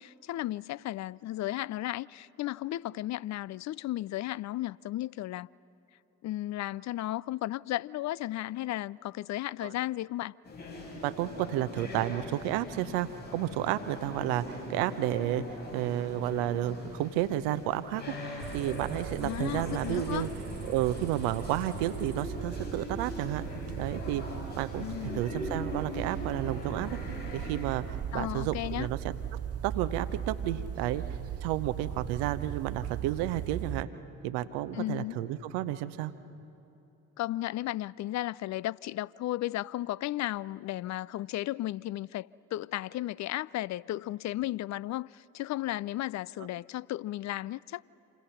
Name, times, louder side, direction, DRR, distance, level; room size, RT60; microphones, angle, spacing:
voice 1, 0.0-5.5 6.2-10.3 19.2-20.3 24.8-25.2 28.1-28.9 34.7-35.2 37.2-47.8, left 15 dB, 45° left, 0.4 m, -34 dB
sound 1, 10.4-27.7, left 1 dB, 80° left, 6.7 m, -41 dB
voice 2, 11.0-15.4 15.7-18.1 18.5-20.3 20.7-23.4 23.8-24.2 24.6-24.9 25.1-27.0 27.3-31.0 31.4-33.9 34.2-36.1, right 13 dB, 70° right, 0.9 m, -31 dB
sound 2, 18.4-33.8, right 10 dB, 35° right, 0.6 m, -38 dB
27.5 x 27.0 x 5.8 m
figure-of-eight pair, 40°, 41 cm